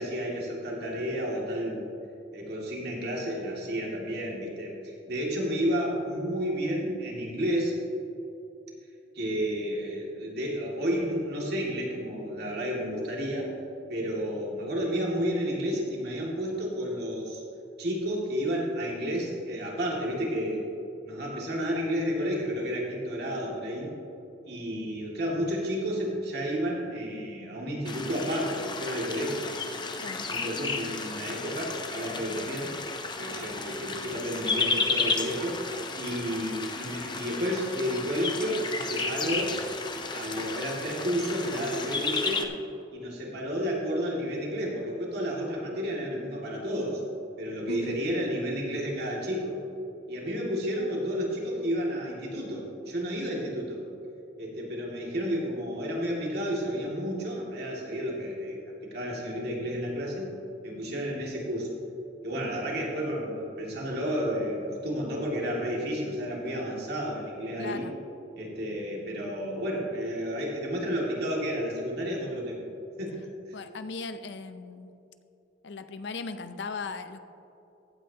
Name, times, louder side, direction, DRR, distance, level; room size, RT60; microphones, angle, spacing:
voice 1, 0.0-1.9 2.3-7.7 9.1-13.5 13.9-17.4 17.8-20.6 21.0-23.9 24.4-29.5 30.2-32.7 33.2-35.6 36.0-39.6 40.1-42.5 42.9-47.0 47.4-49.6 50.1-53.8 54.4-58.6 58.9-60.3 60.6-61.7 62.2-67.8 68.4-72.6 73.0-73.3, equal, 60° right, -3 dB, 2.3 m, -31 dB
sound 1, 27.8-42.4, left 4 dB, 25° left, 0.7 m, -33 dB
voice 2, 47.7-48.0 67.6-67.9 73.5-74.9 75.6-77.2, left 4 dB, 65° left, 10 dB, 0.5 m, -37 dB
15.5 x 8.8 x 2.9 m, 2.9 s
head